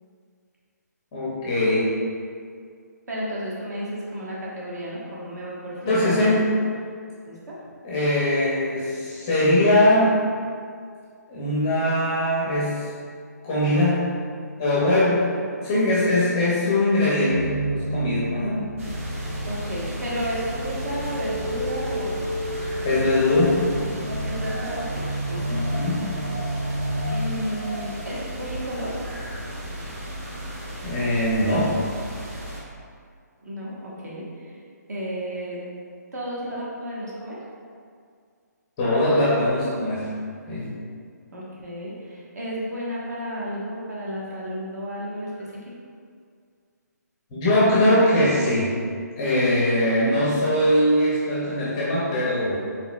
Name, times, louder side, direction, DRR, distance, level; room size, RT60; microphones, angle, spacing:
voice 1, 1.1-2.0 5.9-6.5 7.8-10.2 11.3-12.8 13.4-14.1 14.6-15.3 15.6-18.6 22.8-23.6 25.5-26.0 30.8-31.8 38.8-40.1 40.5-40.7 47.3-48.7 49.2-52.6, left 1 dB, 15° left, -8 dB, 0.5 m, -21 dB
voice 2, 3.1-6.4 7.2-7.6 19.5-22.4 24.2-25.4 27.1-29.0 33.4-34.6 34.9-35.6 36.1-37.4 41.3-45.3, equal, 65° right, -6 dB, 1.2 m, -32 dB
sound 1, 17.3-27.0, equal, 25° right, 1.2 m, -31 dB
sound 2, 18.8-32.6, equal, 45° right, 0.8 m, -35 dB
4.2 x 3.8 x 2.3 m, 2.2 s
hypercardioid pair, 175°, 10 cm